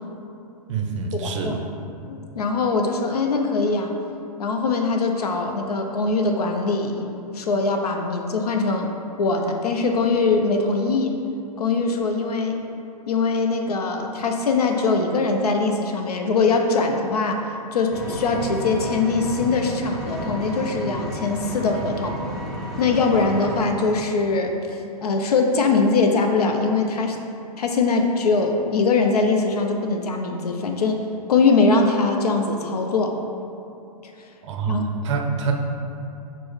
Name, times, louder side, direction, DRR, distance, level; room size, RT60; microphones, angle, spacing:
voice 1, 0.7-1.6 34.4-34.8 35.0-35.5, right 5 dB, 50° right, 2 dB, 0.5 m, -25 dB
voice 2, 1.2-1.6 2.1-3.9 4.4-7.1 7.3-8.9 9.2-11.2 11.6-12.6 13.1-22.2 22.8-24.5 25.0-27.2 27.6-31.0 31.3-33.2 34.7-34.9, left 3 dB, 80° left, 4 dB, 0.5 m, -22 dB
Vehicle, 17.9-23.6, equal, ahead, 0.5 m, -32 dB
6.0 x 2.0 x 3.0 m, 2.7 s
hypercardioid pair, 115°, 20 cm